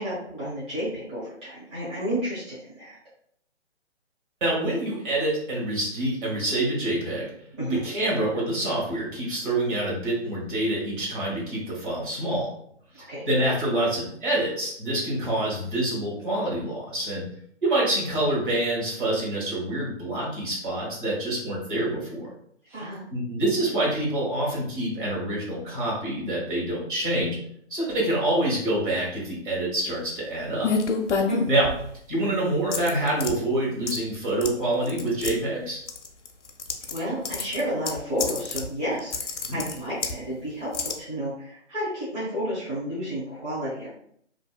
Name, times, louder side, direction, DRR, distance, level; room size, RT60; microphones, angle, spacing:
voice 1, 0.0-3.0 7.5-7.8 12.9-13.2 22.7-23.0 31.3-31.5 36.9-43.9, equal, 20° right, -11 dB, 0.9 m, -31 dB
voice 2, 4.4-7.3 7.8-12.5 13.0-17.2 17.6-22.3 22.7-22.8 23.1-27.4 27.7-30.7 31.5-31.7 32.1-35.8 39.5-39.6, right 1 dB, 45° right, -5 dB, 1.3 m, -26 dB
sound 1, 30.6-31.9 32.7-33.3 33.9-34.2 34.4-34.5 34.8-35.3 35.9-37.0 37.3-38.7 39.0-40.2 40.7-40.9, left 5 dB, 75° left, 0.5 m, -28 dB
2.7 x 2.1 x 2.2 m, 0.66 s
figure-of-eight pair, 145°, 36 cm